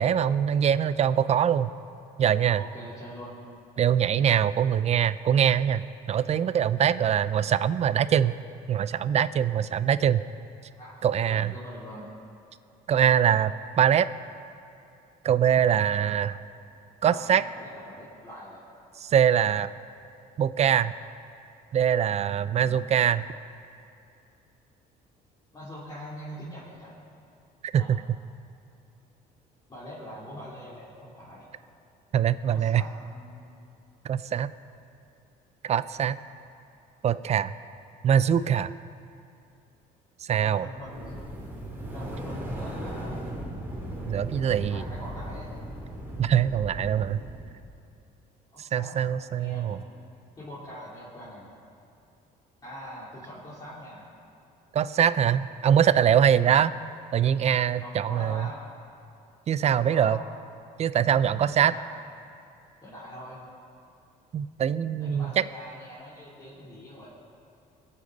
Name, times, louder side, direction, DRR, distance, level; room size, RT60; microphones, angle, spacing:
voice 1, 0.0-1.7 2.2-2.6 3.8-8.3 8.7-10.2 11.0-11.5 12.9-14.1 15.2-16.4 17.0-17.4 19.0-19.7 20.4-20.9 21.7-23.3 27.7-28.0 32.1-32.8 34.0-34.5 35.6-36.2 37.0-37.5 38.0-38.7 40.2-40.7 44.1-44.8 46.2-47.2 48.6-49.8 54.7-56.7 57.1-58.5 59.5-60.2 60.8-61.7 64.3-65.4, right 9 dB, 40° right, 15 dB, 0.4 m, -23 dB
voice 2, 2.5-3.5 10.7-12.1 17.0-18.6 22.4-22.9 25.5-27.0 27.8-28.0 29.7-31.4 32.5-33.6 40.4-41.2 41.9-43.2 44.6-45.5 48.5-48.9 49.3-50.0 50.4-51.5 52.6-54.0 56.3-56.5 57.8-58.6 59.8-60.2 61.6-62.0 62.8-63.4 65.0-67.2, equal, 25° left, -10 dB, 3.2 m, -43 dB
sound 1, 40.7-47.7, right 1 dB, 15° right, 2.7 m, -37 dB
22.5 x 8.2 x 4.0 m, 2.6 s
cardioid pair, 110°, 17 cm